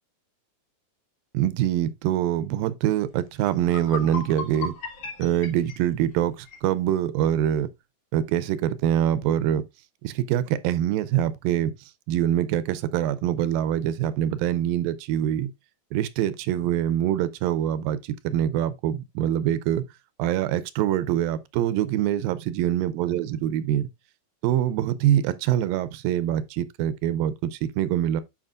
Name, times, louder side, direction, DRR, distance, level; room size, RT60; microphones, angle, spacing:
voice 1, 1.3-4.7 5.2-7.7 8.1-9.6 10.0-11.7 12.1-15.5 15.9-19.9 20.2-23.9 24.4-28.2, right 11 dB, 85° right, 2.3 m, -24 dB
sound 1, 3.1-3.2 3.6-6.7, left 4 dB, 60° left, 3.1 m, -36 dB
11.0 x 5.0 x 2.4 m
omnidirectional pair, 4.1 m